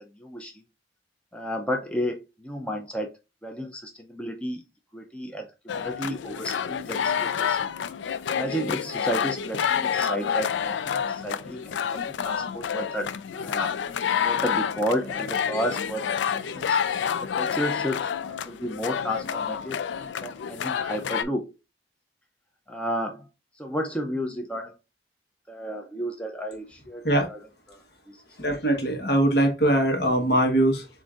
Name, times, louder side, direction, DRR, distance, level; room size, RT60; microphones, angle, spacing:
voice 1, 0.2-0.6 1.3-3.1 3.4-4.6 4.9-7.6 8.3-13.7 14.2-16.8 17.3-19.8 20.2-21.5 22.7-23.3 23.6-24.8 25.5-27.4 27.7-28.2, equal, 5° left, 2 dB, 0.5 m, -32 dB
sound 1, 5.7-21.2, left 7 dB, 85° left, 0.4 m, -28 dB
voice 2, 28.4-30.9, right 1 dB, 60° left, 3 dB, 1.3 m, -22 dB
7.3 x 2.6 x 2.4 m, 0.26 s
head